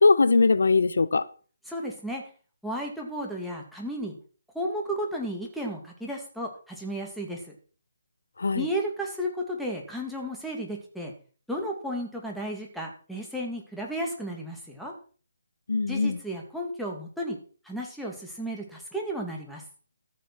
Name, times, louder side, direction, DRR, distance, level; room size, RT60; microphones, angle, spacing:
voice 1, 0.0-1.3 8.4-8.7 15.7-16.2, left 4 dB, 80° left, 0.7 m, -21 dB
voice 2, 1.7-2.2 2.6-4.2 4.5-7.6 8.5-11.1 11.5-14.9 15.9-17.4 17.6-19.6, equal, ahead, 2.3 m, -33 dB
13.5 x 6.7 x 6.1 m
hypercardioid pair, 160°, 0 cm